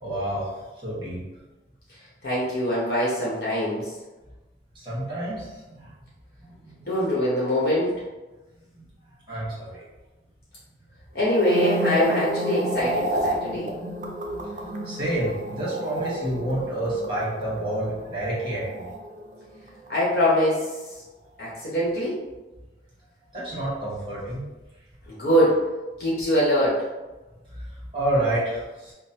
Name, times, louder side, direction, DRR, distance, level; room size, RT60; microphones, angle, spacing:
voice 1, 0.0-0.5 0.8-1.2 4.7-5.9 6.6-6.8 8.8-8.9 9.3-9.8 14.8-18.9 23.3-24.4 27.5-28.9, right 1 dB, 25° right, -7 dB, 1.3 m, -29 dB
voice 2, 2.2-3.9 6.8-7.9 11.1-13.7 19.9-20.8 21.4-22.2 25.1-25.6 26.0-26.8, equal, 55° left, -7 dB, 1.0 m, -23 dB
sound 1, 11.2-19.6 19.9-20.2, right 1 dB, 45° right, 0.5 m, -30 dB
5.1 x 2.1 x 2.8 m, 1.1 s
head